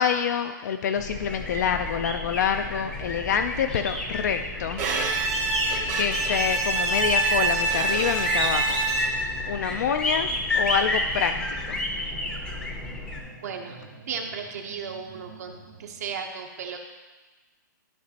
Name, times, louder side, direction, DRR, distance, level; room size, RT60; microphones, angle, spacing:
voice 1, 0.0-4.8 5.9-8.8 9.5-11.8, left 7 dB, 55° left, 7 dB, 0.4 m, -27 dB
sound 1, 1.0-13.2, left 2 dB, 10° left, 0.6 m, -31 dB
sound 2, 1.2-16.2, right 3 dB, 85° right, 1.5 m, -47 dB
Bowed string instrument, 4.8-9.4, right 3 dB, 25° right, 0.8 m, -26 dB
voice 2, 13.4-13.8 14.1-16.8, right 6 dB, 50° right, 3 dB, 0.8 m, -35 dB
12.5 x 5.1 x 2.8 m, 1.3 s
hypercardioid pair, 160°, 11 cm